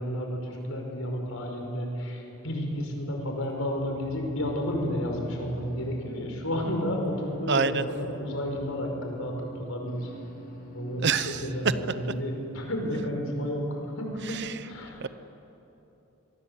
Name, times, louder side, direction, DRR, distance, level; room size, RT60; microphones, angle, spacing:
voice 1, 0.0-10.1 10.7-15.1, equal, 80° left, 2 dB, 5.3 m, -32 dB
sound 1, 3.2-11.9, equal, 45° left, 6.8 m, -45 dB
voice 2, 7.5-7.8 11.0-11.4 14.3-14.6 15.0-15.1, right 5 dB, 55° right, 13 dB, 0.9 m, -26 dB
25.0 x 23.0 x 8.2 m, 3.0 s
head